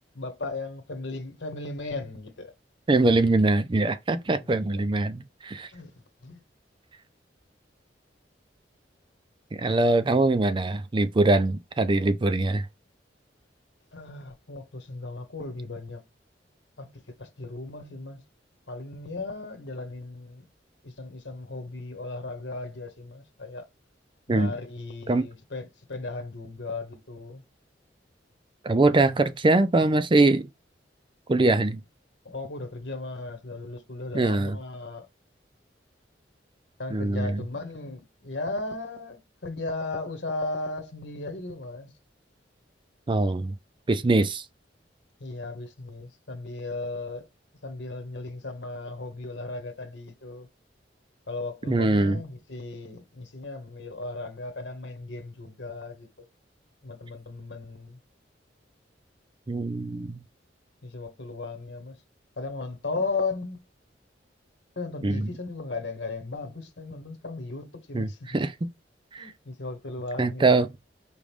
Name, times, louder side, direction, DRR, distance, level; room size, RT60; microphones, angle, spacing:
voice 1, 0.1-2.5 4.6-4.8 5.7-5.9 6.2-6.4 13.9-16.0 16.8-18.2 18.7-20.4 20.8-23.7 24.3-27.4 32.2-35.1 36.8-41.9 45.2-47.3 47.6-50.5 51.3-56.1 56.8-58.0 60.8-61.9 62.4-63.6 64.8-68.3 69.2-70.5, left 3 dB, 75° left, 1.1 m, -36 dB
voice 2, 2.9-5.7 9.5-12.7 24.3-24.5 25.1-25.3 28.6-30.5 31.3-31.8 34.1-34.6 36.9-37.4 43.1-43.5 43.9-44.4 51.7-52.2 59.5-60.2 65.0-65.3 67.9-68.7 69.1-69.3 70.2-70.7, right 2 dB, 30° right, 0.5 m, -23 dB
4.9 x 3.0 x 3.4 m
head